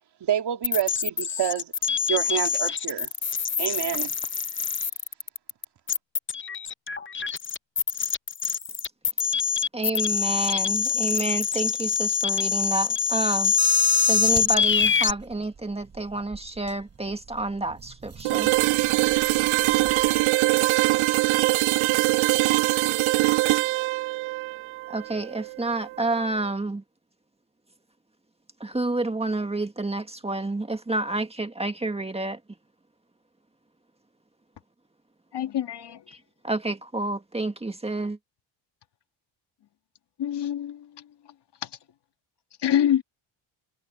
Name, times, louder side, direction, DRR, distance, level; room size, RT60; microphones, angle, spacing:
voice 1, 0.2-1.7 2.1-3.1 3.6-4.1, right 10 dB, 55° right, 2.7 m, -27 dB
sound 1, 0.6-15.1, left 6 dB, 25° left, 0.8 m, -25 dB
voice 2, 9.7-13.5 14.1-18.5 24.9-26.8 28.6-32.4 36.4-38.2, right 2 dB, 10° right, 1.8 m, -29 dB
sound 2, 14.1-20.3, right 6 dB, 35° right, 5.0 m, -45 dB
sound 3, 18.2-26.1, right 20 dB, 75° right, 0.6 m, -23 dB
voice 3, 35.3-36.0 40.2-40.9 41.6-41.7 42.6-43.0, left 10 dB, 55° left, 2.0 m, -25 dB
cardioid pair, 120°, 47 cm